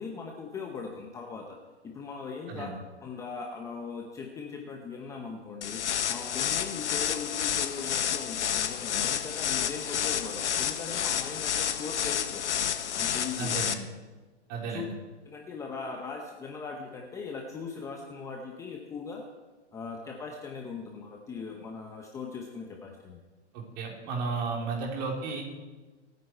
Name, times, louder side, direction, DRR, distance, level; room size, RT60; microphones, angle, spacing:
voice 1, 0.0-1.6 1.8-2.7 3.0-5.8 6.1-12.5 12.9-13.6 14.7-14.9 15.3-19.3 19.7-23.2, left 5 dB, 10° left, 1 dB, 0.7 m, -39 dB
sound 1, 5.6-13.7, left 9 dB, 75° left, 1.3 m, -30 dB
voice 2, 13.4-13.8 14.5-14.9 23.5-25.4, right 4 dB, 35° right, 0 dB, 3.5 m, -33 dB
26.0 x 9.4 x 4.5 m, 1.3 s
hypercardioid pair, 150°, 35 cm